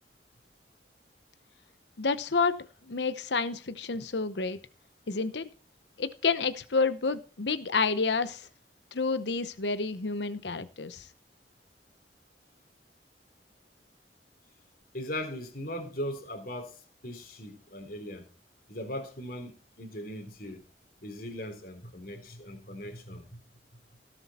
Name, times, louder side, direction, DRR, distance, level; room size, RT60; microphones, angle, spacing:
voice 1, 2.0-4.6 5.1-5.5 6.0-8.5 8.9-11.1, left 4 dB, 80° left, 0.9 m, -29 dB
voice 2, 14.9-18.3 18.7-20.6 21.0-23.4, equal, 55° left, 3.5 m, -39 dB
17.0 x 7.8 x 4.3 m
head